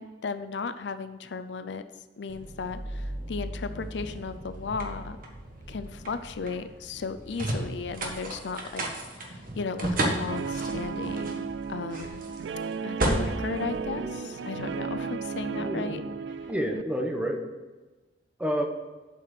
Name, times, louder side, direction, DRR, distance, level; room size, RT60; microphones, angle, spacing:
voice 1, 0.0-1.8 2.2-5.2 5.7-12.4 12.8-16.0, left 4 dB, 75° left, 10 dB, 0.5 m, -36 dB
sound 1, 2.3-14.6, right 1 dB, 55° right, 1.5 m, -34 dB
Guitar, 10.3-16.8, right 5 dB, 80° right, 0.4 m, -34 dB
voice 2, 13.7-14.2 15.5-16.1 16.5-17.4 18.4-18.6, equal, 5° right, 3 dB, 1.0 m, -30 dB
7.5 x 5.9 x 6.6 m, 1.2 s
head